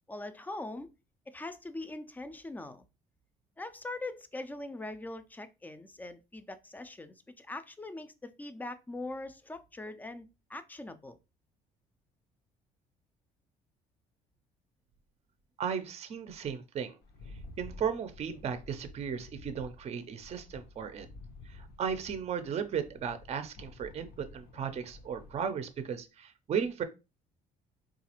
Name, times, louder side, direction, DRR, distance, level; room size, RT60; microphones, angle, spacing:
voice 1, 0.1-0.9 1.3-2.9 3.6-11.2, left 2 dB, 10° left, 0.4 m, -42 dB
voice 2, 15.6-17.0 17.6-21.1 21.5-26.8, right 7 dB, 40° right, 0.5 m, -35 dB
Rattle, 17.0-25.5, left 3 dB, 65° left, 0.6 m, -51 dB
3.9 x 2.4 x 2.9 m
cardioid pair, 110°, 17 cm